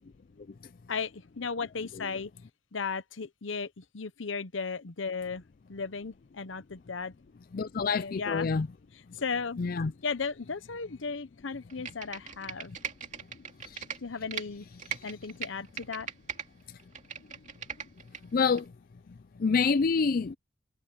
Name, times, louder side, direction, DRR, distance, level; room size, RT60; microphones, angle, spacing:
voice 1, 0.9-2.3 2.7-5.4 5.7-7.1 7.9-8.5 9.1-9.6 10.0-12.7 14.0-14.7 15.0-16.1, left 5 dB, 80° left, 0.9 m, -35 dB
voice 2, 7.5-8.7 9.6-9.9 13.7-13.8 18.3-18.7 19.4-20.3, left 5 dB, 45° left, 0.4 m, -27 dB
Computer keyboard, 11.7-14.4 14.8-16.5 16.8-18.2 18.6-18.7, right 7 dB, 40° right, 2.4 m, -39 dB
head